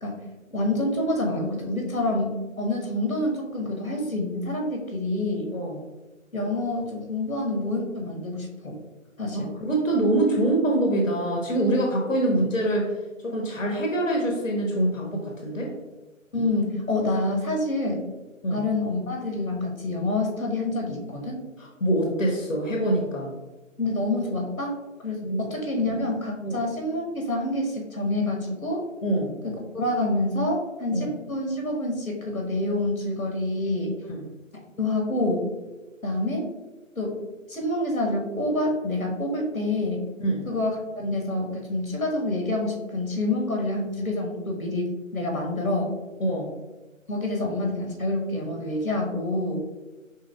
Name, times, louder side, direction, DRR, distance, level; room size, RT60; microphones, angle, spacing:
voice 1, 0.5-5.5 6.3-8.8 9.2-9.5 16.3-18.1 18.5-21.4 23.8-24.7 25.0-28.8 29.4-33.9 34.8-35.5 36.0-36.5 37.0-37.2 37.5-40.1 40.5-45.9 47.1-49.6, left 2 dB, 90° left, 0 dB, 1.2 m, -27 dB
voice 2, 9.6-12.9 13.2-15.7 18.4-18.7 21.6-23.3 25.2-25.4 26.4-26.6 29.0-29.3 30.9-31.1 34.1-34.2 40.2-40.4 46.2-46.5, right 1 dB, 70° left, -1 dB, 1.0 m, -24 dB
4.9 x 3.5 x 2.2 m, 1.2 s
figure-of-eight pair, 160°, 41 cm